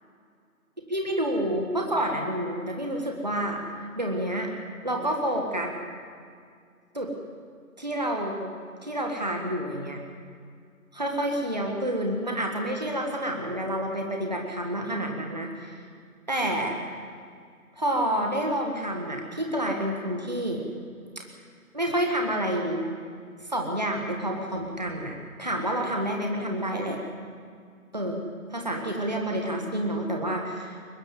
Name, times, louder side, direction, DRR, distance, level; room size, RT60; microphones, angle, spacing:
voice 1, 0.9-3.6 4.0-4.5 4.8-5.7 6.9-7.1 7.8-8.5 8.8-10.0 10.9-15.7 16.3-16.8 17.8-20.6 21.2-21.3 21.7-22.9 23.5-27.0 27.9-30.8, right 1 dB, 30° right, 1 dB, 1.7 m, -29 dB
23.0 x 13.0 x 9.2 m, 2.2 s
figure-of-eight pair, 170°, 44 cm